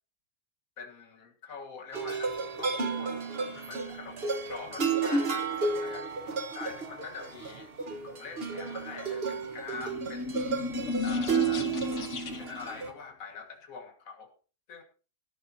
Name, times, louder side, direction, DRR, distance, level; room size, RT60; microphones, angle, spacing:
voice 1, 0.8-3.1 3.5-6.1 6.5-7.7 8.0-10.4 11.0-11.7 12.4-14.3 14.7-14.8, left 5 dB, 70° left, 4 dB, 2.0 m, -44 dB
sound 1, 1.9-12.9, right 5 dB, 45° right, 1.5 m, -32 dB
sound 2, 9.6-12.7, left 3 dB, 55° left, 1.4 m, -33 dB
16.0 x 13.5 x 2.8 m, 0.37 s
omnidirectional pair, 1.5 m